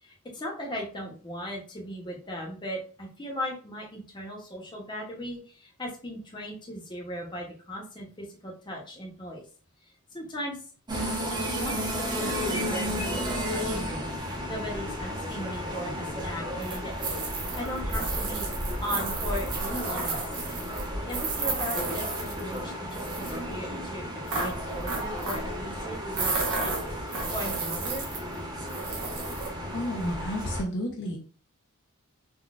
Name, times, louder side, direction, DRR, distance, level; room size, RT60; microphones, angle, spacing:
voice 1, 0.0-9.5 9.8-10.6 11.3-18.5 18.8-20.4 21.0-24.1 24.3-28.1, equal, 20° left, -1 dB, 0.7 m, -38 dB
sound 1, 10.9-30.6, equal, 20° right, 0.7 m, -33 dB
sound 2, 16.6-22.6 22.9-23.4 24.3-25.5 26.1-28.3 28.7-29.5, right 4 dB, 80° right, 0.9 m, -33 dB
voice 2, 29.7-31.2, equal, 55° left, 1 dB, 0.5 m, -31 dB
3.8 x 2.2 x 2.3 m, 0.39 s
head